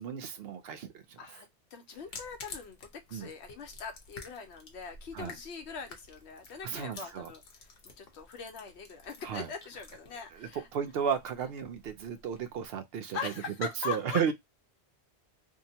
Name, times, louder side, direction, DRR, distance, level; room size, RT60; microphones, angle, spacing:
voice 1, 0.0-1.4 3.1-3.3 5.1-5.4 6.6-7.3 9.2-9.5 10.3-13.3 13.6-14.3, right 7 dB, 70° right, 0.7 m, -34 dB
voice 2, 1.2-7.4 8.0-10.7 13.1-14.3, left 5 dB, 90° left, 1.0 m, -42 dB
sound 1, 1.9-12.7, left 3 dB, 65° left, 0.9 m, -52 dB
2.8 x 2.2 x 2.7 m
omnidirectional pair, 1.1 m